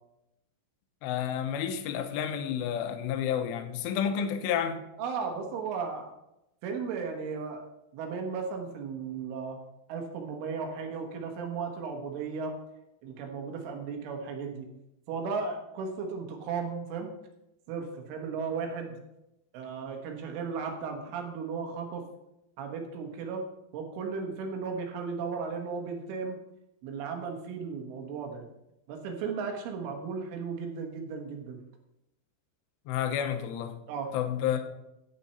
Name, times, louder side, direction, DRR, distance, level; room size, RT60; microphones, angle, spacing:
voice 1, 1.0-4.8 32.9-33.7 34.1-34.7, left 9 dB, 75° left, 7 dB, 2.9 m, -30 dB
voice 2, 5.0-6.1 6.6-7.7 7.9-9.6 9.9-12.6 13.0-14.7 15.1-17.1 17.7-19.0 19.5-22.0 22.6-23.4 23.7-26.4 26.8-28.5 28.9-31.6 33.9-34.2, right 5 dB, 85° right, 3 dB, 4.0 m, -35 dB
11.0 x 8.8 x 4.3 m, 0.87 s
omnidirectional pair, 5.5 m